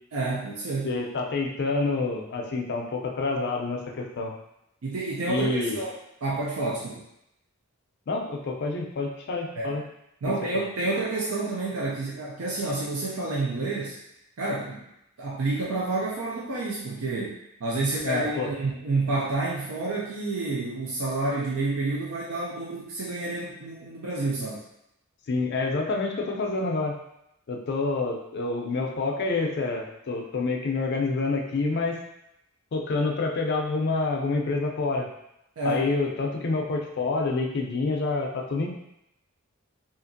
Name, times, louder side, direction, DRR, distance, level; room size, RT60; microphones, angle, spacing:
voice 1, 0.1-0.9 4.8-6.0 6.2-7.0 9.6-9.7 10.2-14.0 14.4-14.8 15.2-24.6 35.6-35.9, right 2 dB, 75° right, -4 dB, 0.4 m, -29 dB
voice 2, 0.8-4.3 5.3-5.8 8.1-9.8 10.5-10.6 17.8-18.5 25.3-27.0 27.5-32.0 32.7-35.1 35.6-38.7, left 3 dB, 50° left, 1 dB, 0.4 m, -27 dB
2.8 x 2.5 x 2.6 m, 0.81 s
head